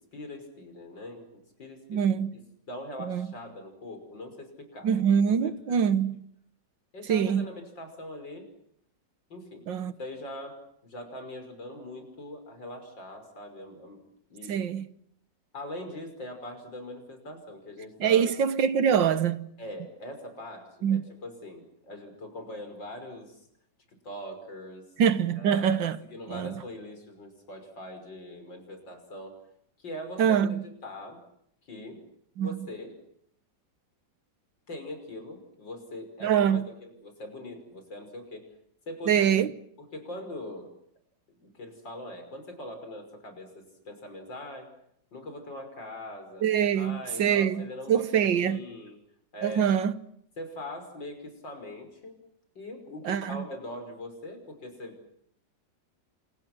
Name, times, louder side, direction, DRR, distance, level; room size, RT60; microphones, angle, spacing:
voice 1, 0.0-2.0 2.7-5.8 6.9-8.5 9.3-14.0 14.3-14.6 15.5-18.2 19.6-23.5 24.0-24.9 25.4-25.7 26.0-29.3 29.8-31.2 31.7-32.0 32.4-33.0 34.7-38.5 38.9-39.4 39.8-40.7 41.4-44.7 45.1-46.5 46.8-48.9 49.3-49.7 50.4-52.2 52.5-55.1, left 1 dB, 85° left, 6.5 m, -42 dB
voice 2, 1.9-2.4 3.0-3.3 4.8-6.3 7.1-7.5 9.7-9.9 14.5-14.9 18.0-19.5 20.8-21.0 25.0-26.0 26.3-26.5 30.2-30.6 32.4-32.5 36.2-36.7 39.1-39.5 46.4-48.6 49.4-50.0 53.1-53.5, right 8 dB, 90° right, 2.0 m, -24 dB
29.0 x 27.5 x 6.2 m
omnidirectional pair, 1.9 m